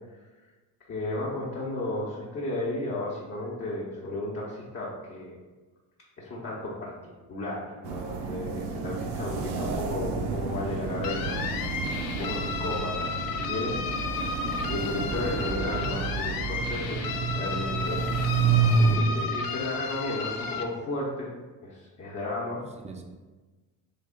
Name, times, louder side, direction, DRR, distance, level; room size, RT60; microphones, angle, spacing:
voice 1, 0.9-5.4 6.2-6.9 7.3-11.4 11.8-13.8 14.4-17.0 17.3-18.0 18.7-21.3 21.6-22.6, left 2 dB, 35° left, -6 dB, 0.8 m, -34 dB
sound 1, 7.8-19.0, right 5 dB, 70° right, 0.6 m, -29 dB
sound 2, 11.0-20.6, left 5 dB, 55° left, 0.5 m, -33 dB
voice 2, 11.2-11.6 18.8-19.4 22.8-23.0, right 2 dB, 15° right, 3 dB, 0.4 m, -39 dB
3.3 x 2.4 x 3.7 m, 1.3 s
cardioid pair, 90°, 43 cm